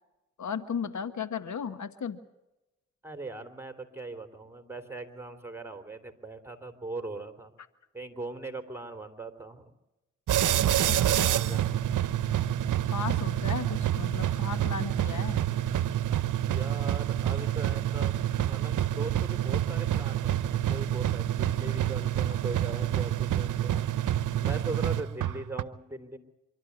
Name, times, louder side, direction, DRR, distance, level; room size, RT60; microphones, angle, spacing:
voice 1, 0.4-2.2 10.9-11.6 12.9-15.4, left 6 dB, 70° left, 12 dB, 1.3 m, -35 dB
voice 2, 3.0-7.5 7.9-9.7 10.3-11.8 16.4-18.1 18.5-23.9 24.4-26.2, right 3 dB, 10° right, 8 dB, 3.3 m, -40 dB
sound 1, 10.3-25.6, right 12 dB, 80° right, 0.8 m, -27 dB
25.5 x 13.0 x 9.4 m, 0.98 s
cardioid pair, 50°, 30 cm